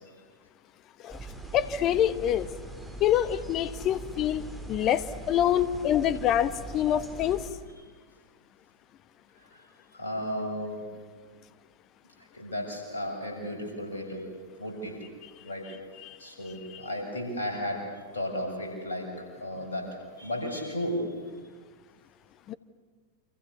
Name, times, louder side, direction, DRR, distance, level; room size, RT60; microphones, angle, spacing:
sound 1, 1.1-7.5, right 1 dB, ahead, 4.1 m, -42 dB
voice 1, 1.5-2.5 3.0-7.5 16.0-16.2 16.7-16.8 22.5-22.6, left 10 dB, 35° left, 15 dB, 1.2 m, -26 dB
voice 2, 9.9-10.8 12.3-14.3 14.6-14.9 15.4-15.7 16.2-17.8 18.1-19.1 19.4-19.9 20.2-21.0, left 1 dB, 75° left, 2 dB, 7.3 m, -34 dB
29.0 x 26.5 x 7.0 m, 1.5 s
figure-of-eight pair, 90°, 0 cm